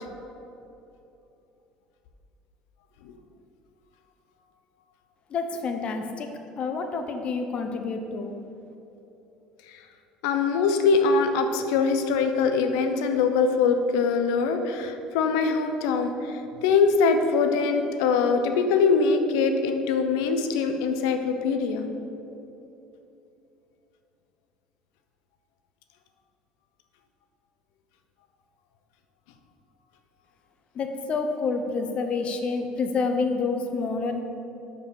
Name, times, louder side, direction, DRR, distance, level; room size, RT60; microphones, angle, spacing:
voice 1, 5.3-6.3 6.6-8.3 30.7-34.2, left 4 dB, 45° left, 6 dB, 0.9 m, -28 dB
voice 2, 10.2-21.9, left 5 dB, 85° left, 7 dB, 0.7 m, -23 dB
6.0 x 5.2 x 6.9 m, 2.9 s
supercardioid pair, 100°, 3 cm